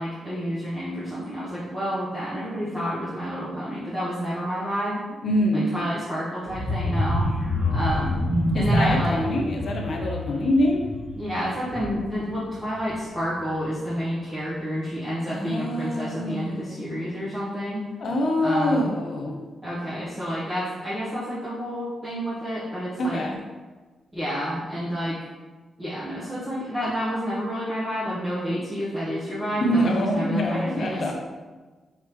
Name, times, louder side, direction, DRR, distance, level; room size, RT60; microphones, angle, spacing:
voice 1, 0.0-5.0 5.5-7.3 7.7-8.2 8.5-9.2 11.1-17.8 18.4-18.9 19.6-23.2 24.1-25.2 25.8-31.1, equal, 10° right, -11 dB, 0.9 m, -29 dB
voice 2, 5.2-5.7 8.5-10.9 15.3-17.1 18.0-19.4 23.0-23.4 29.6-31.1, left 1 dB, 50° left, 1 dB, 0.5 m, -25 dB
sound 1, 6.4-12.2 12.6-12.9 13.2-13.3, left 1 dB, 35° right, 1.1 m, -26 dB
4.5 x 3.5 x 3.0 m, 1.3 s
wide cardioid pair, 170°, 0 cm